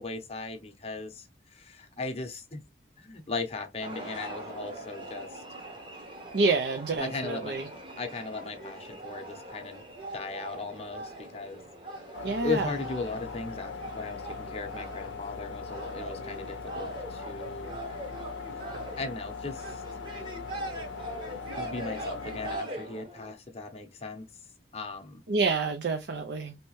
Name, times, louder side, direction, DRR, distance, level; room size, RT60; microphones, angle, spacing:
voice 1, 0.0-2.6 3.0-5.4 7.0-7.7 8.0-9.8 10.1-11.6 11.9-17.8 19.0-19.8 20.1-20.2 21.6-24.3 24.7-25.2, left 3 dB, 30° left, 0.7 m, -37 dB
sound 1, 3.8-23.3, right 1 dB, 25° right, 0.8 m, -42 dB
voice 2, 6.3-7.7 12.2-12.7 25.3-26.6, right 3 dB, 60° right, 0.5 m, -28 dB
sound 2, 12.1-22.6, left 5 dB, 80° left, 0.5 m, -41 dB
3.2 x 2.8 x 3.0 m
head